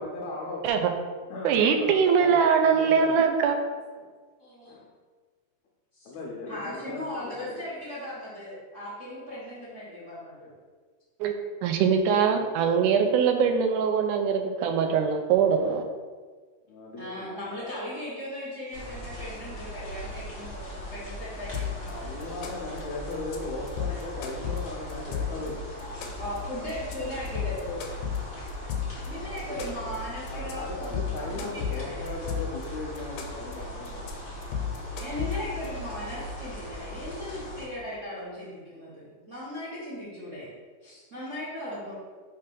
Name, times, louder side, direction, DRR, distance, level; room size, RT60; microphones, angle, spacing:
voice 1, 0.0-0.6 1.3-3.3 4.0-4.1 4.7-4.9 6.1-7.5 12.3-13.1 13.3-13.4 16.7-17.3 21.3-21.4 21.9-25.6 28.8-29.4 29.7-29.8 30.3-34.1, left 2 dB, 75° left, -3 dB, 2.0 m, -38 dB
voice 2, 1.4-3.6 11.2-11.3 11.6-15.8, right 6 dB, 85° right, 6 dB, 2.0 m, -22 dB
voice 3, 4.4-4.8 5.9-6.1 6.5-10.5 17.0-22.2 23.6-24.0 25.8-27.8 29.1-32.2 35.0-40.6 40.8-41.9, left 1 dB, 65° right, -11 dB, 0.7 m, -38 dB
sound 1, 18.7-37.6, equal, 40° left, 1.2 m, -39 dB
sound 2, 21.5-21.9 22.2-22.8 23.1-23.4 23.7-25.5 25.8-26.4 26.7-26.9 27.3-29.1 29.4-30.0 30.3-30.5 30.8-32.6 33.0-33.5 33.9-34.1 34.4-35.7, left 9 dB, 90° left, 2.3 m, -32 dB
5.7 x 3.2 x 5.2 m, 1.5 s
omnidirectional pair, 3.6 m